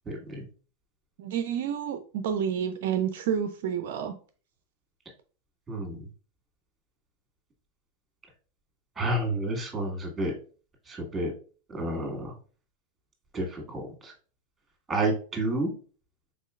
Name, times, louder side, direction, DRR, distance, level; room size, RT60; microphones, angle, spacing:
voice 1, 0.1-0.4 5.7-6.0 9.0-10.3 10.9-11.3 11.7-12.3 13.3-14.1 14.9-15.7, right 1 dB, 10° right, 2 dB, 1.7 m, -30 dB
voice 2, 1.2-4.1, right 8 dB, 55° right, 8 dB, 0.4 m, -29 dB
5.4 x 3.8 x 2.4 m, 0.39 s
figure-of-eight pair, 90°, 0 cm